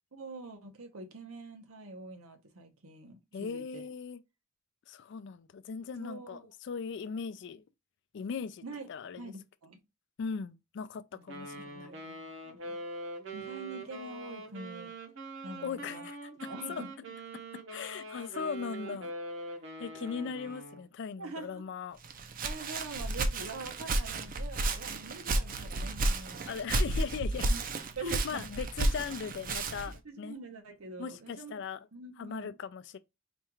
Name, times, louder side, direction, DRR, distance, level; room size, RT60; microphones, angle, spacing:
voice 1, 0.1-3.9 6.0-6.4 8.6-8.9 9.2-9.8 11.1-11.3 11.5-12.8 13.3-14.9 15.4-16.1 16.4-16.9 20.0-20.3 21.2-21.6 22.4-26.5 27.4-27.6 28.0-28.4 30.0-31.6 31.9-32.5, right 3 dB, 85° right, 0.9 m, -44 dB
voice 2, 3.3-4.2 4.9-7.6 8.1-8.6 8.9-9.2 10.2-12.0 15.6-16.3 16.7-16.8 17.7-19.1 19.8-22.0 26.5-27.5 28.2-30.4 31.0-31.8 32.2-33.0, left 6 dB, 55° left, 0.3 m, -39 dB
Wind instrument woodwind instrument, 11.3-20.9, right 2 dB, 60° right, 0.9 m, -43 dB
Walk footsteps, 22.0-30.0, right 2 dB, 40° right, 0.5 m, -32 dB
4.3 x 2.4 x 3.0 m
head